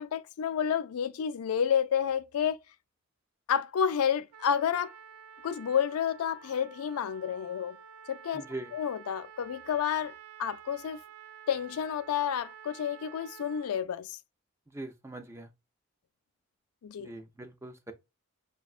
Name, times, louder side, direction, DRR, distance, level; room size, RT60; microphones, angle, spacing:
voice 1, 0.0-2.6 3.5-4.9 5.4-7.8 8.1-8.4 8.7-11.0 11.5-14.2 16.8-17.1, left 8 dB, 85° left, 0.4 m, -30 dB
Trumpet, 4.3-13.8, right 8 dB, 85° right, 0.3 m, -51 dB
voice 2, 8.3-8.7 14.7-15.5 17.0-17.9, right 2 dB, 10° right, 0.4 m, -42 dB
6.0 x 2.2 x 2.3 m
head